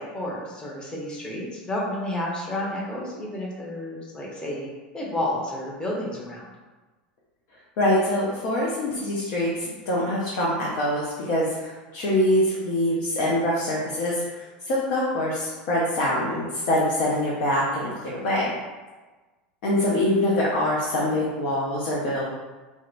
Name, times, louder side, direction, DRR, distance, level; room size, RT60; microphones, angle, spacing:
voice 1, 0.0-4.7 4.9-6.4 19.9-20.0, left 1 dB, 15° left, -4 dB, 0.8 m, -31 dB
voice 2, 7.8-18.5 19.6-22.3, left 1 dB, 60° left, -5 dB, 0.6 m, -24 dB
2.7 x 2.1 x 2.4 m, 1.2 s
hypercardioid pair, 95°, 5 cm